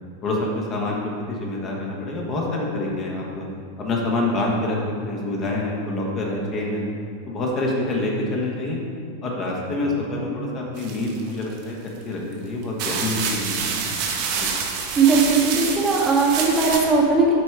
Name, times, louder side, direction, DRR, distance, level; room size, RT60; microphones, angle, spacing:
voice 1, 0.2-1.0 1.3-3.4 3.8-4.8 5.1-6.9 7.3-8.8 9.2-11.8 12.0-14.0 14.4-14.5, left 2 dB, 30° left, -2 dB, 1.3 m, -26 dB
sound 1, 10.8-11.6 12.3-12.4 12.8-16.8, right 6 dB, 45° right, 1.0 m, -27 dB
voice 2, 15.0-17.3, right 4 dB, 15° right, -3 dB, 1.1 m, -18 dB
7.5 x 4.4 x 4.8 m, 2.4 s
figure-of-eight pair, 90°, 0 cm